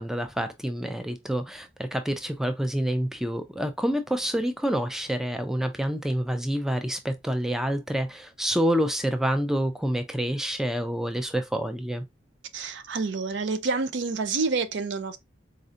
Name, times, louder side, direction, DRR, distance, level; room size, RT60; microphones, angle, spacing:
voice 1, 0.0-12.0, equal, ahead, 0.3 m, -27 dB
voice 2, 12.5-15.2, right 4 dB, 65° right, 0.5 m, -28 dB
4.1 x 2.6 x 2.5 m
head